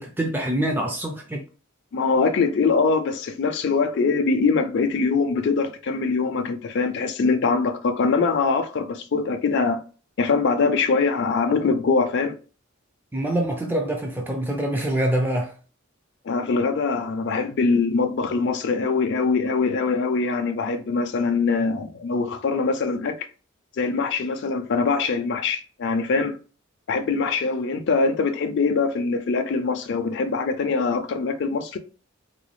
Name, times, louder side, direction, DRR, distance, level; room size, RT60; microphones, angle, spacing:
voice 1, 0.0-1.4 13.1-15.5, right 1 dB, 10° right, 0.4 m, -25 dB
voice 2, 1.9-9.8 10.2-12.4 16.2-23.3 23.8-26.4 26.9-31.8, left 4 dB, 60° left, 0.4 m, -23 dB
4.0 x 2.2 x 3.0 m
head